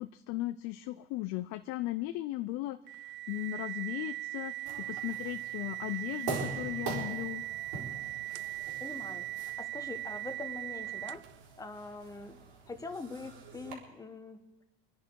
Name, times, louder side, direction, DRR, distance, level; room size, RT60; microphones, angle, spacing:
voice 1, 0.0-7.4, left 16 dB, 55° left, 10 dB, 0.6 m, -37 dB
sound 1, 2.9-11.4, right 15 dB, 35° right, 0.4 m, -39 dB
sound 2, 4.7-13.7, right 4 dB, 75° right, 4.4 m, -44 dB
voice 2, 8.8-11.2 11.6-12.4 12.7-14.4, left 3 dB, 10° left, 7 dB, 1.3 m, -43 dB
25.5 x 10.0 x 4.8 m, 1.1 s
supercardioid pair, 115°, 33 cm